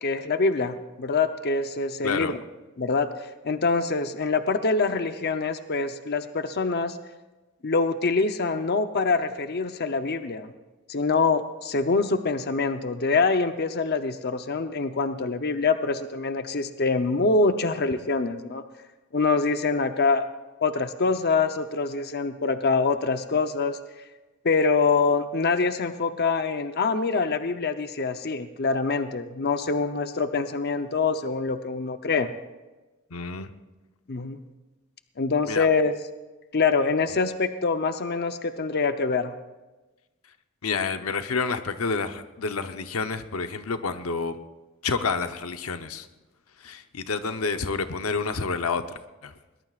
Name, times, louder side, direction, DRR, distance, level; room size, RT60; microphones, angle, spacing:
voice 1, 0.0-2.4 2.8-7.0 7.6-10.5 10.9-18.6 19.1-20.2 20.6-23.8 24.4-32.3 34.1-34.4 35.2-35.9 36.5-39.3, left 4 dB, 50° left, 8 dB, 0.8 m, -25 dB
voice 2, 2.0-2.3 33.1-33.5 35.5-35.7 37.1-37.2 40.6-44.4 44.8-46.1 46.6-49.3, left 4 dB, 90° left, 8 dB, 0.9 m, -29 dB
21.5 x 20.0 x 2.5 m, 1.1 s
head